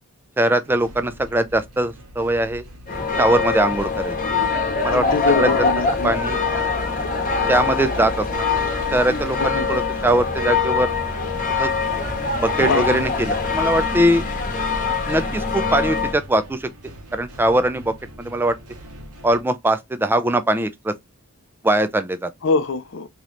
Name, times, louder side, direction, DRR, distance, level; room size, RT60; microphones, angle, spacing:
voice 1, 0.4-2.6 3.2-4.2 4.8-5.0 5.4-5.5 6.0-6.4 7.5-8.5 8.9-10.9 11.6-11.7 12.4-14.2 15.1-16.7 17.1-18.6 19.2-20.9 21.6-22.3, right 1 dB, 10° right, 0.3 m, -21 dB
sound 1, 0.6-19.4, right 1 dB, 85° right, 1.1 m, -42 dB
sound 2, 2.9-16.2, left 4 dB, 35° left, 1.0 m, -23 dB
voice 2, 4.9-6.2 9.4-9.8 12.6-13.0 22.4-23.1, left 4 dB, 55° left, 0.5 m, -24 dB
3.1 x 2.9 x 3.7 m
head